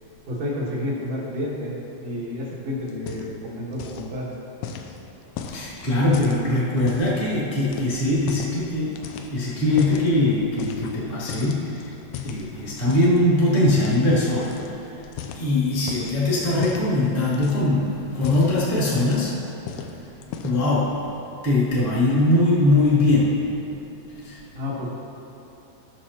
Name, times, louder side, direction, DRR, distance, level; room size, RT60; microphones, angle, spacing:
voice 1, 0.3-1.7 2.0-4.3 24.5-24.9, left 1 dB, 60° right, -6 dB, 1.8 m, -30 dB
sound 1, 2.9-3.5 3.7-4.1 4.6-7.2 7.6-8.6 9.0-10.1 10.6-11.0 11.3-13.2 13.7-14.0 14.4-14.7 15.0-16.2 16.6-16.9 17.3-17.8 18.1-19.3 19.7-19.9 20.2-20.7, left 7 dB, 85° left, 3.0 m, -36 dB
voice 2, 5.4-11.9 12.2-15.0 15.3-19.4 20.4-21.0 21.4-23.4 24.2-24.4, left 1 dB, 25° left, -8 dB, 1.6 m, -21 dB
17.5 x 6.6 x 2.9 m, 2.9 s
omnidirectional pair, 5.3 m